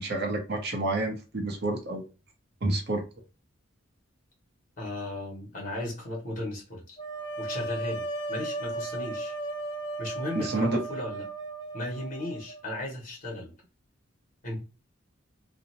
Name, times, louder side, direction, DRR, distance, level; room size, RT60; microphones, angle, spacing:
voice 1, 0.0-2.1 2.6-3.0 10.3-10.8, right 2 dB, 50° right, 0.6 m, -29 dB
voice 2, 4.8-7.0 7.4-9.3 10.0-11.2 11.7-13.5 14.4-14.6, left 1 dB, 40° left, 1.1 m, -36 dB
sound 1, 7.0-12.8, right 2 dB, 25° left, 0.7 m, -36 dB
2.6 x 2.0 x 2.8 m
head